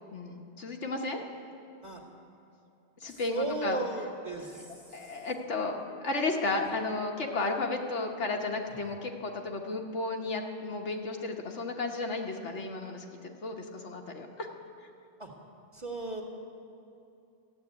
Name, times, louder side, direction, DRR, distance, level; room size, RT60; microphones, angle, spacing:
voice 1, 0.1-1.2 3.0-3.8 4.4-4.5 4.9-5.8 6.0-13.0 13.4-14.5, left 3 dB, 75° left, 2 dB, 1.5 m, -33 dB
voice 2, 3.1-4.8 15.2-15.3 15.7-16.2, right 2 dB, 25° right, 0 dB, 1.8 m, -35 dB
14.0 x 8.1 x 9.7 m, 2.7 s
omnidirectional pair, 1.2 m